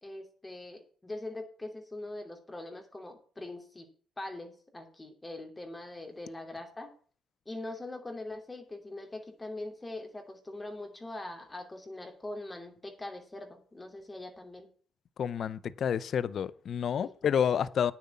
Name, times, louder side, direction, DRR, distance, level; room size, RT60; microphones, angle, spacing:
voice 1, 0.0-3.9 4.2-6.9 7.5-14.7 17.0-17.1, left 2 dB, 15° left, 2.8 m, -42 dB
voice 2, 15.2-17.9, left 8 dB, 60° left, 0.6 m, -29 dB
9.4 x 7.5 x 7.2 m
cardioid pair, 90°, 0 cm